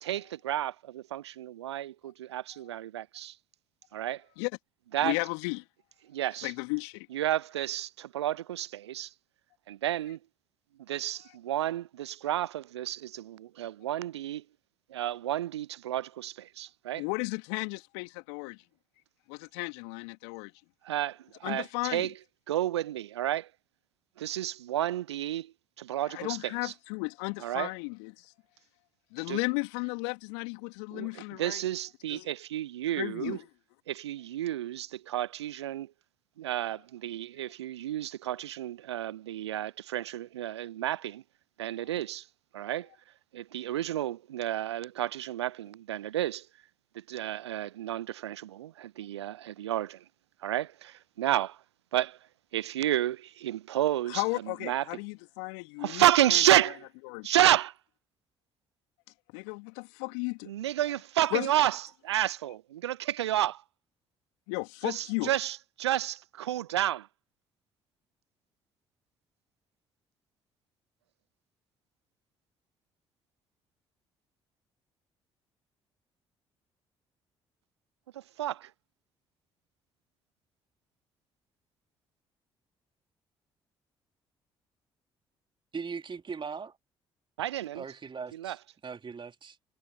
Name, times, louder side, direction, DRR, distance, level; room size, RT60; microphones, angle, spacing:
voice 1, 0.0-3.4 3.9-4.2 4.9-5.1 6.1-6.5 7.1-9.1 9.7-10.2 10.9-14.4 14.9-17.0 20.8-22.1 22.5-23.5 24.2-26.7 27.4-27.7 29.3-29.4 30.9-33.4 33.9-35.9 36.4-41.2 41.6-42.3 42.5-42.9 43.3-46.5 46.9-50.0 50.4-51.6 51.9-52.2 52.5-54.9 55.8-56.8 57.2-57.7 60.5-63.6 64.8-67.1 78.1-78.7 87.4-87.8 88.3-88.6, right 12 dB, 80° right, 0.4 m, -31 dB
voice 2, 5.0-5.6 6.4-7.1 17.0-18.6 19.3-20.5 21.4-22.1 26.1-28.3 29.1-31.7 32.1-32.3 33.0-33.4 54.1-56.0 56.3-56.4 57.0-57.3 59.3-60.5 61.3-61.5 64.5-65.3, left 37 dB, 70° left, 3.0 m, -34 dB
voice 3, 85.7-86.8 87.7-88.6 88.8-89.6, right 5 dB, 35° right, 2.6 m, -39 dB
figure-of-eight pair, 45°, 14 cm